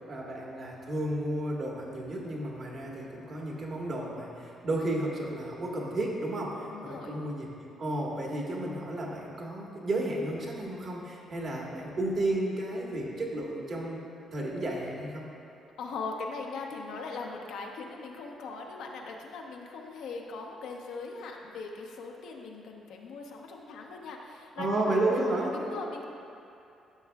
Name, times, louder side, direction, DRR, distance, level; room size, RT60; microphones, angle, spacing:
voice 1, 0.1-7.5 7.8-15.2 24.6-25.5, right 1 dB, 50° right, -2 dB, 1.5 m, -32 dB
voice 2, 6.7-7.2 15.8-25.2 25.5-26.1, left 4 dB, 85° left, 0 dB, 0.8 m, -40 dB
12.5 x 6.4 x 2.3 m, 2.7 s
cardioid pair, 90°, 0 cm